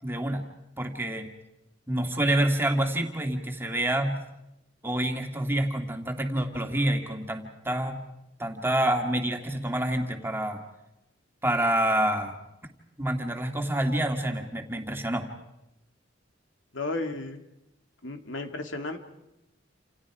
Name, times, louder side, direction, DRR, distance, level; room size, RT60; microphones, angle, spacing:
voice 1, 0.0-0.4 0.8-1.3 1.9-4.2 4.8-8.0 8.4-10.6 11.4-12.3 13.0-15.3, right 1 dB, 10° right, 4 dB, 2.4 m, -27 dB
voice 2, 16.7-17.4 18.0-19.0, left 2 dB, 75° left, 5 dB, 2.6 m, -33 dB
29.0 x 28.5 x 5.0 m, 0.88 s
head